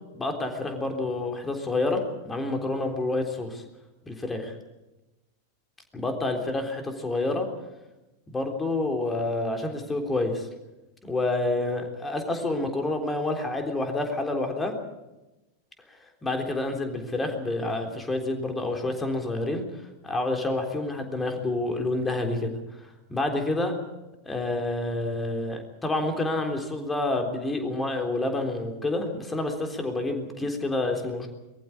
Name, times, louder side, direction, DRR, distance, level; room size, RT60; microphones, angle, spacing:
voice 1, 0.1-3.6 4.1-4.5 5.9-7.5 8.3-10.5 11.1-14.7 16.2-19.6 20.0-22.5 23.1-23.7 24.3-31.3, left 2 dB, 10° left, 4 dB, 3.6 m, -28 dB
22.5 x 14.5 x 9.7 m, 1.0 s
figure-of-eight pair, 90°, 0 cm